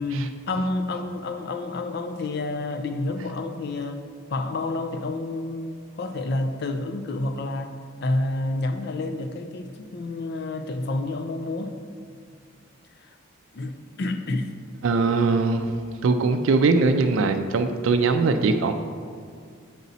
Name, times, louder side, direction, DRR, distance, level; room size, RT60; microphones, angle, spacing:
voice 1, 0.0-4.0 4.3-7.7 8.0-11.8 13.0-13.2 13.5-14.5, left 2 dB, 50° left, 8 dB, 0.4 m, -29 dB
voice 2, 14.8-15.7 16.0-18.7, right 4 dB, 75° right, 8 dB, 0.4 m, -21 dB
8.1 x 4.1 x 4.1 m, 2.2 s
head